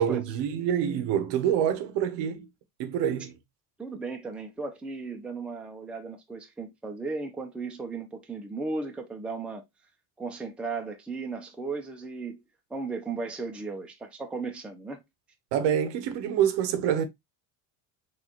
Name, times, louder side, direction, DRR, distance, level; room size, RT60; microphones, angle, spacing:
voice 1, 0.0-2.5 2.8-3.3 15.5-17.0, right 9 dB, 60° right, 0.9 m, -26 dB
voice 2, 3.8-9.6 10.2-12.4 12.7-15.0, right 4 dB, ahead, 0.6 m, -36 dB
4.0 x 2.6 x 2.9 m
supercardioid pair, 105°, 48 cm